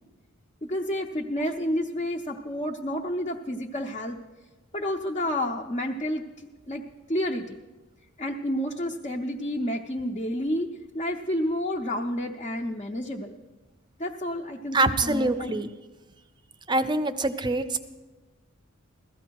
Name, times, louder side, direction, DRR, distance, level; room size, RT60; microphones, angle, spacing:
voice 1, 0.6-4.2 4.7-7.6 8.2-13.4 14.0-15.6, equal, 30° left, 0 dB, 0.6 m, -30 dB
voice 2, 14.7-15.7 16.7-17.8, right 2 dB, 20° right, 11 dB, 0.5 m, -24 dB
16.0 x 14.0 x 4.6 m, 1.2 s
head